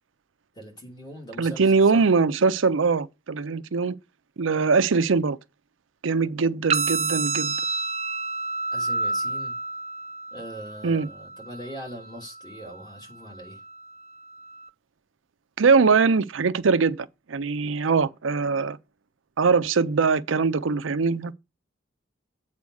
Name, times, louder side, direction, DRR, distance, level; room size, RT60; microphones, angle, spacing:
voice 1, 0.5-2.1 8.7-9.6 10.3-13.6, equal, 20° left, 3.0 m, -41 dB
voice 2, 1.4-4.0 4.4-5.4 6.0-7.6 10.8-11.1 15.6-18.8 19.4-21.3, right 4 dB, 80° right, 0.6 m, -22 dB
sound 1, 6.7-14.7, right 3 dB, 35° right, 0.5 m, -31 dB
8.4 x 4.3 x 6.3 m
head